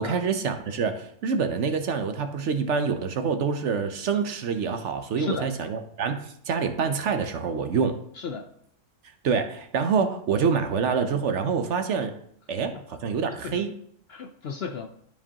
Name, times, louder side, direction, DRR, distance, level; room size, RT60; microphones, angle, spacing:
voice 1, 0.0-8.0 9.2-12.1 12.5-13.7, right 5 dB, 60° right, 7 dB, 0.9 m, -26 dB
voice 2, 5.2-5.5 8.2-8.5 12.7-12.8 13.4-13.7 14.1-14.9, left 5 dB, 60° left, 5 dB, 0.7 m, -34 dB
12.5 x 4.8 x 2.9 m, 0.68 s
omnidirectional pair, 1.5 m